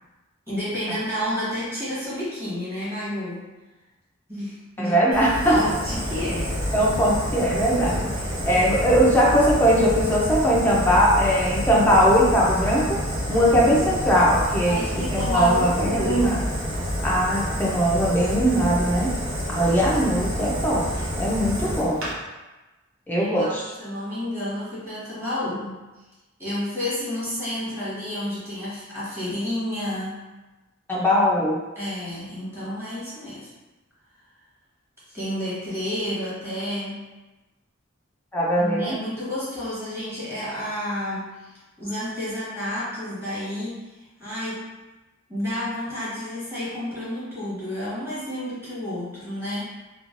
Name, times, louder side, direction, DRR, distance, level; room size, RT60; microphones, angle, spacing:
voice 1, 0.5-3.5 4.3-6.6 14.6-16.4 23.2-23.5 23.8-25.8 26.4-30.2 31.7-33.5 35.1-37.0 38.6-44.7 45.3-49.7, left 1 dB, 10° right, -10 dB, 1.1 m, -30 dB
voice 2, 4.8-5.6 6.7-8.1 8.5-13.0 13.3-14.8 15.1-16.4 17.0-19.1 19.5-20.8 21.2-22.0 23.1-23.6 30.9-31.6 38.3-39.0, equal, 10° left, -6 dB, 0.4 m, -20 dB
Fire, 5.1-22.1, equal, 80° right, 0.7 m, -28 dB
3.1 x 2.2 x 2.5 m, 1.1 s
head